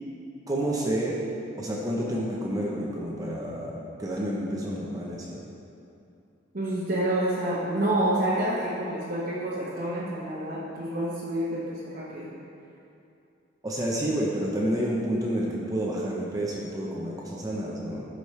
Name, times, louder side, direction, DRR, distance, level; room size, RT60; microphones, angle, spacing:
voice 1, 0.5-1.2 1.6-5.4 13.6-18.1, right 1 dB, 20° right, -4 dB, 0.8 m, -29 dB
voice 2, 6.5-12.3, right 1 dB, 50° right, -9 dB, 1.1 m, -28 dB
12.5 x 5.1 x 3.2 m, 2.7 s
head